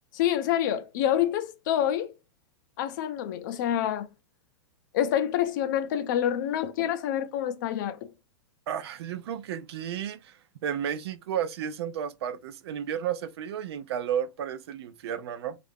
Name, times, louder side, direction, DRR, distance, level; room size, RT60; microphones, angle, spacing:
voice 1, 0.1-2.1 2.8-4.1 4.9-8.1, left 10 dB, 45° left, 0.5 m, -27 dB
voice 2, 8.7-10.4 10.6-15.6, right 9 dB, 65° right, 0.5 m, -32 dB
3.1 x 2.4 x 3.4 m
supercardioid pair, 160°, 15 cm